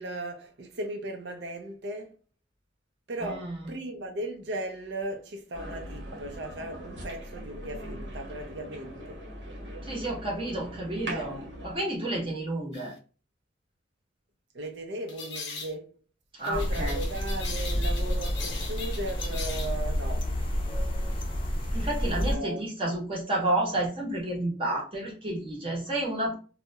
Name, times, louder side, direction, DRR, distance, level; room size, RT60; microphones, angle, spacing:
voice 1, 0.0-2.2 3.1-9.3 11.1-11.4 14.5-15.9 16.4-20.3 22.3-22.7, right 1 dB, 70° right, 0.5 m, -37 dB
voice 2, 3.2-3.5 9.8-11.4 11.6-12.9 16.4-17.0 21.7-26.3, right 1 dB, 30° right, 0.9 m, -30 dB
sound 1, 5.5-11.8, equal, 90° right, 0.9 m, -41 dB
sound 2, 12.7-12.9 15.1-15.7 16.4-19.8, left 4 dB, 75° left, 0.5 m, -40 dB
sound 3, 16.5-22.4, equal, 30° left, 0.5 m, -29 dB
2.3 x 2.0 x 2.7 m
head